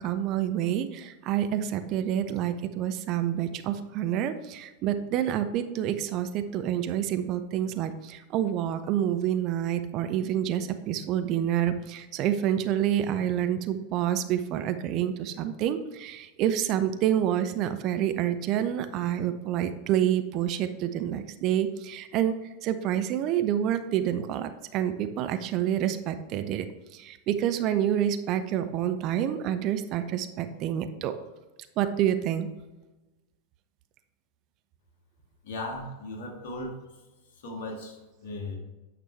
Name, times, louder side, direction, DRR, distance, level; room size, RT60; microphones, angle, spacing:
voice 1, 0.0-22.3 22.6-26.7 26.9-31.2 31.8-32.5, right 10 dB, 40° right, 9 dB, 0.5 m, -28 dB
voice 2, 35.4-36.7 37.4-38.0 38.2-38.6, left 2 dB, 55° left, 1 dB, 1.8 m, -36 dB
9.1 x 6.0 x 3.3 m, 1.1 s
figure-of-eight pair, 90°, 0 cm